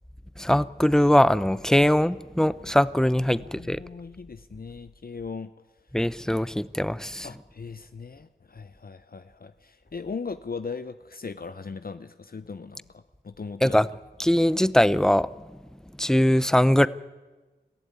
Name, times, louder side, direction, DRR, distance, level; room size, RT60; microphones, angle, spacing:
voice 1, 0.4-3.8 5.9-7.3 13.6-13.9 14.2-15.3 16.0-16.9, equal, 5° left, 17 dB, 0.7 m, -21 dB
voice 2, 3.3-5.5 7.2-13.8, left 5 dB, 55° left, 11 dB, 0.8 m, -38 dB
22.0 x 15.5 x 9.6 m, 1.2 s
wide cardioid pair, 50°, 18 cm